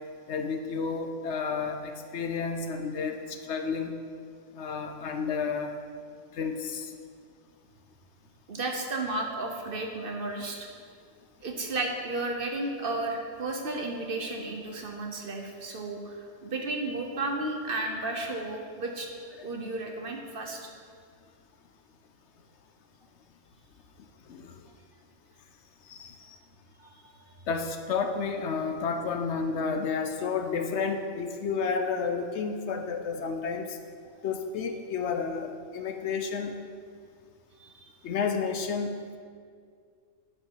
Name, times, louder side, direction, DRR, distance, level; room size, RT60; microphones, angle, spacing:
voice 1, 0.3-3.9 4.5-5.7 6.3-6.9 19.4-19.5 24.3-24.6 25.9-26.4 27.5-33.8 34.2-36.5 38.0-38.9, left 5 dB, 70° left, 6 dB, 0.9 m, -31 dB
voice 2, 8.5-10.7 11.4-19.1 19.4-20.7 26.8-27.3 37.6-37.9, right 2 dB, 50° right, 2 dB, 1.0 m, -33 dB
11.0 x 5.6 x 4.6 m, 2.1 s
omnidirectional pair, 1.3 m